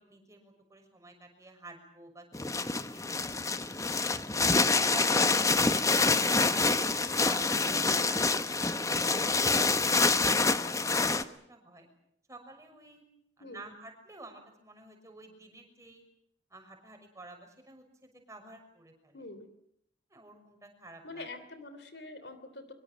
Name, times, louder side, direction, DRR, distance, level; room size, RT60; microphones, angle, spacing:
voice 1, 0.0-4.3 4.9-5.3 5.6-10.2 10.5-11.9 12.3-13.0 13.4-16.0 16.5-19.2 20.1-21.3, right 2 dB, 15° right, 4 dB, 6.1 m, -50 dB
sound 1, 2.3-11.2, left 3 dB, 15° left, 1.1 m, -26 dB
voice 2, 19.1-19.5 21.0-22.7, left 2 dB, 60° left, 10 dB, 3.2 m, -45 dB
24.5 x 24.0 x 7.6 m, 0.72 s
head